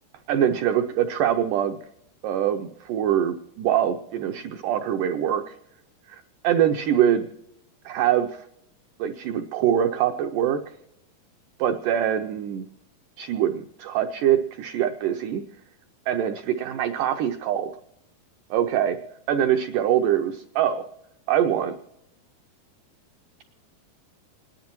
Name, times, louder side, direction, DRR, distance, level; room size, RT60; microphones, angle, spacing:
voice 1, 0.3-1.8 2.2-5.6 6.4-7.3 7.9-8.4 9.0-10.6 11.6-12.6 13.2-15.4 16.1-17.7 18.5-19.0 19.3-20.8 21.3-21.7, right 10 dB, 90° right, 6 dB, 1.8 m, -23 dB
29.0 x 10.5 x 3.0 m, 0.82 s
omnidirectional pair, 4.4 m